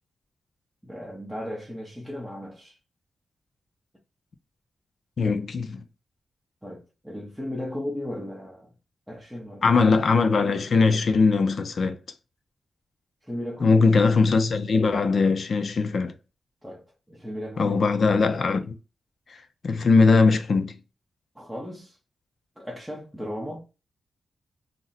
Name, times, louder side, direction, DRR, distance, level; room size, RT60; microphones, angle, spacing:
voice 1, 0.8-2.8 6.6-8.7 9.1-9.8 13.2-13.9 16.6-17.9 21.3-22.0 22.6-23.6, left 1 dB, ahead, 0.7 m, -36 dB
voice 2, 5.2-5.8 9.6-12.0 13.6-16.2 17.6-18.8 19.6-20.8, left 4 dB, 50° left, 0.4 m, -20 dB
2.5 x 2.0 x 3.9 m
wide cardioid pair, 130°, 0 cm